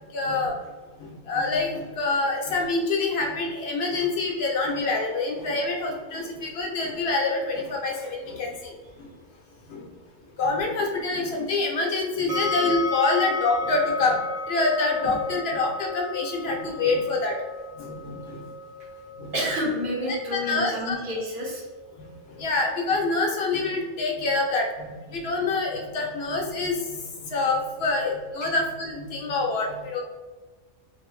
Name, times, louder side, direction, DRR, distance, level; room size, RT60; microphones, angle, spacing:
voice 1, 0.1-0.6 1.0-8.7 9.0-9.1 9.7-9.9 10.4-17.3 17.8-18.5 19.2-19.3 20.3-21.0 22.0-22.1 22.4-30.0, left 3 dB, 65° left, 0 dB, 0.9 m, -26 dB
sound 1, 12.3-25.3, left 3 dB, 85° right, 1.2 m, -35 dB
voice 2, 19.3-21.6 28.4-28.5, equal, 50° right, -4 dB, 1.1 m, -29 dB
2.7 x 2.6 x 3.0 m, 1.3 s
omnidirectional pair, 1.2 m